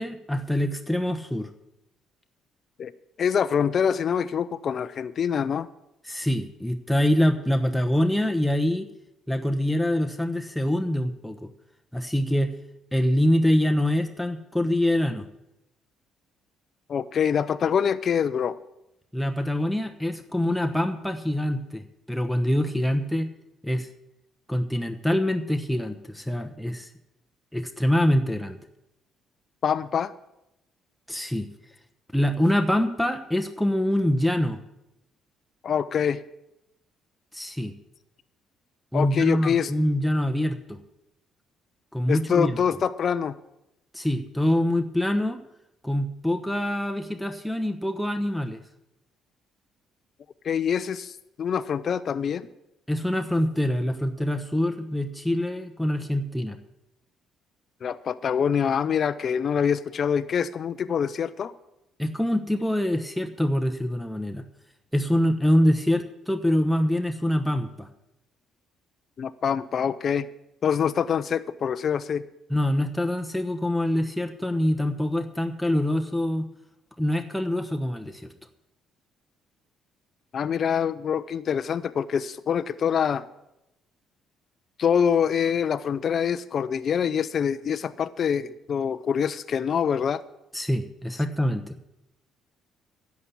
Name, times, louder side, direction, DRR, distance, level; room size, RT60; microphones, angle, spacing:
voice 1, 0.0-1.5 6.0-8.9 9.3-11.5 11.9-12.5 12.9-15.3 19.1-21.8 22.1-23.3 23.6-23.9 24.5-26.9 27.5-28.6 31.1-31.5 32.1-34.6 37.3-37.7 38.9-40.8 41.9-42.6 43.9-45.4 45.8-48.6 52.9-56.6 62.0-64.4 64.9-67.9 72.5-76.4 77.0-78.3 90.5-91.8, left 1 dB, ahead, 4 dB, 1.0 m, -25 dB
voice 2, 3.2-5.7 16.9-18.6 29.6-30.1 35.6-36.2 38.9-39.7 42.1-43.3 50.4-52.5 57.8-61.5 69.2-70.3 70.6-72.2 80.3-83.3 84.8-90.2, left 7 dB, 55° left, 13 dB, 0.5 m, -25 dB
11.0 x 7.2 x 8.3 m, 0.88 s
hypercardioid pair, 60°, 0 cm